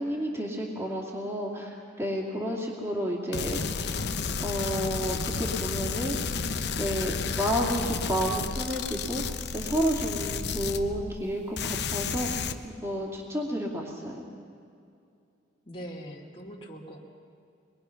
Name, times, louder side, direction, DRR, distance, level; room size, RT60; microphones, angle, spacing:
voice 1, 0.0-3.8 4.4-6.2 6.8-14.2, equal, 15° right, -2 dB, 2.4 m, -31 dB
sound 1, 3.3-11.3 11.6-12.5, left 5 dB, 65° left, 0.9 m, -32 dB
voice 2, 15.6-17.0, equal, 30° left, -3 dB, 2.4 m, -42 dB
25.0 x 21.5 x 5.8 m, 2.5 s
head